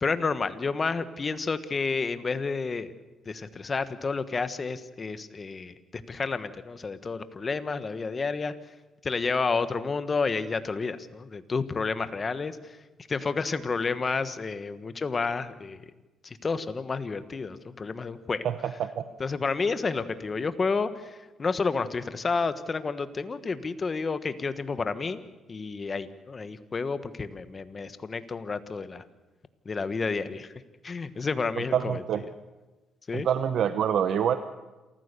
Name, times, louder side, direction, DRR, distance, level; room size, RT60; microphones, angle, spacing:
voice 1, 0.0-2.9 3.2-8.5 9.0-12.6 13.1-15.8 16.2-18.4 19.2-25.2 25.5-29.0 29.6-30.5 30.8-32.0 33.1-33.3, left 4 dB, 35° left, 12 dB, 1.2 m, -30 dB
voice 2, 18.4-19.0 31.7-32.2 33.1-34.4, right 8 dB, 70° right, 10 dB, 0.8 m, -26 dB
28.0 x 14.5 x 6.8 m, 1.2 s
cardioid pair, 90°, 0 cm